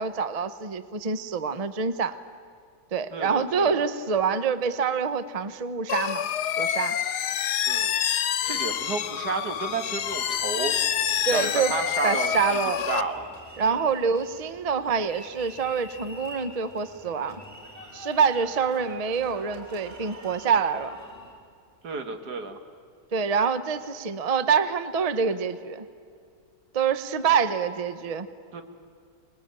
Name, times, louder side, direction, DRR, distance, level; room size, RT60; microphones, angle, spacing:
voice 1, 0.0-2.2 2.9-6.3 6.6-7.0 11.2-11.7 12.0-12.8 13.6-17.4 17.9-21.0 23.1-25.8 26.7-28.3, right 6 dB, 30° right, 12 dB, 0.7 m, -26 dB
voice 2, 3.1-3.9 7.7-7.9 8.4-10.8 11.3-12.6 12.9-13.4 13.6-13.8 21.8-22.6 28.5-28.6, right 4 dB, 80° right, 7 dB, 2.2 m, -31 dB
sound 1, 5.9-13.0, left 10 dB, 85° left, 1.4 m, -27 dB
sound 2, 8.4-21.3, equal, 10° right, 4.3 m, -47 dB
25.0 x 20.5 x 8.9 m, 2.3 s
omnidirectional pair, 1.7 m